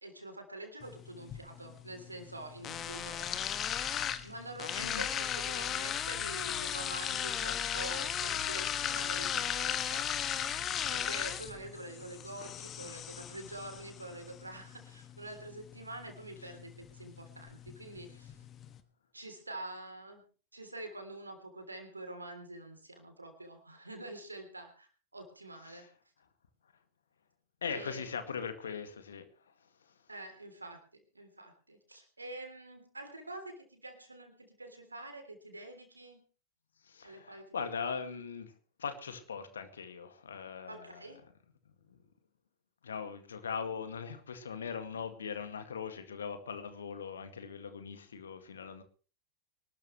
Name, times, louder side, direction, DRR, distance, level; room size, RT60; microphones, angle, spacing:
voice 1, 0.0-3.4 4.2-10.1 10.9-18.3 19.1-20.2 20.5-25.8 27.7-28.1 30.1-36.2 37.0-37.7 40.7-41.2, right 2 dB, 80° right, 6 dB, 3.3 m, -46 dB
sound 1, 0.8-18.8, left 9 dB, 30° left, 1.4 m, -37 dB
voice 2, 4.8-5.1 25.6-25.9 27.6-29.3 36.8-38.5 38.8-41.3 41.9-42.0 42.8-48.8, left 6 dB, 70° left, 9 dB, 2.1 m, -40 dB
24.0 x 12.5 x 3.2 m, 0.38 s
figure-of-eight pair, 90°, 0 cm